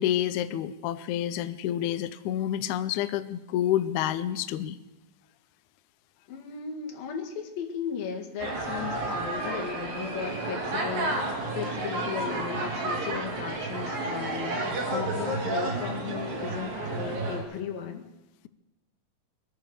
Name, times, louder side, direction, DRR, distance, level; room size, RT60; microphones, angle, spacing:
voice 1, 0.0-4.8, left 11 dB, 85° left, 12 dB, 1.7 m, -28 dB
voice 2, 6.3-18.1, left 7 dB, 70° left, 2 dB, 3.6 m, -36 dB
sound 1, 8.4-17.4, right 2 dB, 65° right, 4.6 m, -31 dB
23.0 x 8.9 x 6.9 m, 1.0 s
omnidirectional pair, 4.3 m